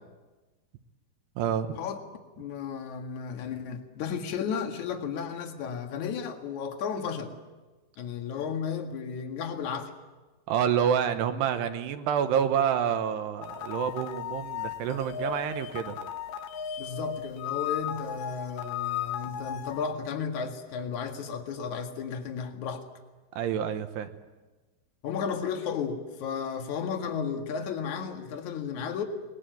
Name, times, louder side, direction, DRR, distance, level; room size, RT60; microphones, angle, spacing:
voice 1, 1.4-1.8 10.5-16.0 23.3-24.1, right 8 dB, 70° right, 8 dB, 2.9 m, -28 dB
voice 2, 2.4-7.3 8.0-9.9 16.8-22.8 25.0-29.0, left 6 dB, 50° left, 4 dB, 2.5 m, -33 dB
sound 1, 13.4-19.9, left 9 dB, 90° left, 1.8 m, -35 dB
23.0 x 21.0 x 9.2 m, 1.2 s
omnidirectional pair, 5.5 m